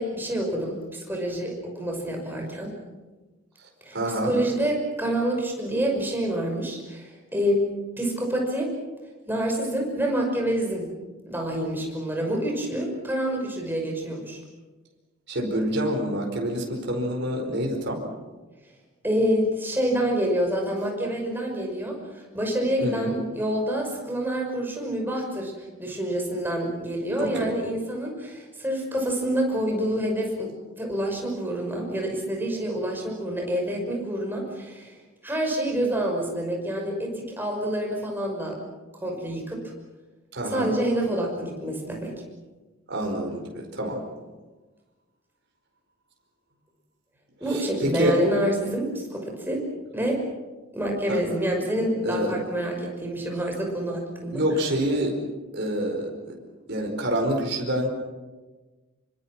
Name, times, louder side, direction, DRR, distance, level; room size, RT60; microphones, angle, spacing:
voice 1, 0.0-2.7 3.8-4.0 4.2-7.6 8.0-8.7 9.3-10.9 11.3-14.4 19.0-25.5 25.8-30.5 30.8-35.0 35.2-38.6 38.9-39.6 40.5-42.2 47.4-49.6 49.9-50.2 50.7-54.4, right 1 dB, 10° right, 0 dB, 5.9 m, -27 dB
voice 2, 3.9-4.4 15.3-18.0 22.8-23.1 27.2-27.5 40.3-40.7 42.9-44.0 47.5-48.2 51.1-51.2 52.0-52.3 54.3-55.2 55.5-56.3 56.7-57.9, equal, 55° right, 1 dB, 4.9 m, -27 dB
26.5 x 25.0 x 6.1 m, 1.2 s
head